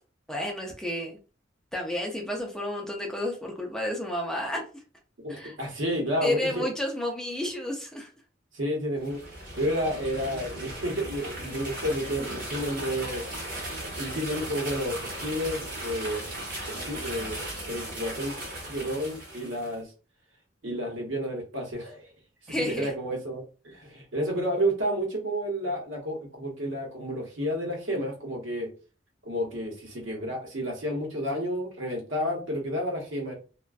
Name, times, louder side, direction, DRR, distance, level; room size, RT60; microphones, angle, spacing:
voice 1, 0.3-1.2 1.7-4.6 5.3-5.5 6.2-8.1 22.5-22.9, left 1 dB, 5° left, 0 dB, 0.4 m, -31 dB
voice 2, 5.2-6.7 8.5-13.2 13.9-16.3 16.7-18.3 18.7-19.9 20.6-22.1 22.4-28.7 29.2-33.3, equal, 75° right, 1 dB, 0.9 m, -31 dB
sound 1, 8.9-19.7, right 1 dB, 45° right, 1.0 m, -37 dB
2.4 x 2.2 x 2.3 m, 0.35 s
head